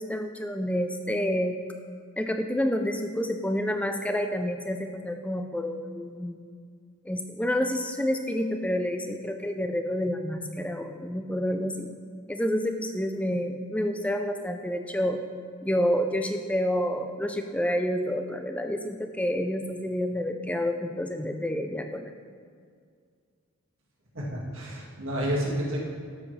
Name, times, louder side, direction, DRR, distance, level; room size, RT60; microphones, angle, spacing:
voice 1, 0.0-1.6 2.2-6.4 7.1-11.9 12.3-15.2 15.6-22.1, equal, 5° left, 6 dB, 0.4 m, -29 dB
voice 2, 24.1-25.8, equal, 60° right, -4 dB, 1.9 m, -30 dB
12.0 x 7.4 x 3.2 m, 2.1 s
head